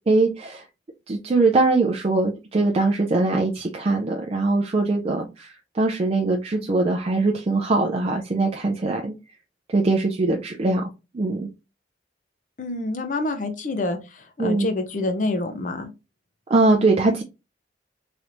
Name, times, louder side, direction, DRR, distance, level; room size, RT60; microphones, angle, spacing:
voice 1, 0.1-0.6 1.1-9.1 9.7-10.8 11.1-11.5 14.4-14.7 16.5-17.2, right 3 dB, 35° right, 0.4 m, -21 dB
voice 2, 12.6-15.9, left 2 dB, 45° left, 0.6 m, -27 dB
3.2 x 3.0 x 2.5 m
head